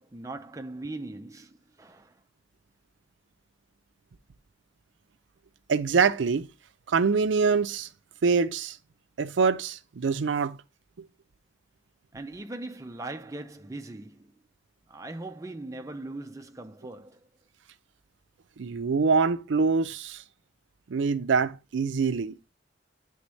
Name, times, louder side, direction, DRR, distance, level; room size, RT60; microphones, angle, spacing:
voice 1, 0.0-2.2 12.1-14.4 14.9-17.2, right 2 dB, 15° right, 0.5 m, -40 dB
voice 2, 5.7-6.5 6.9-7.9 8.2-8.8 9.2-10.6 18.6-20.2 20.9-22.4, right 5 dB, 80° right, 0.5 m, -24 dB
9.6 x 3.5 x 3.1 m
head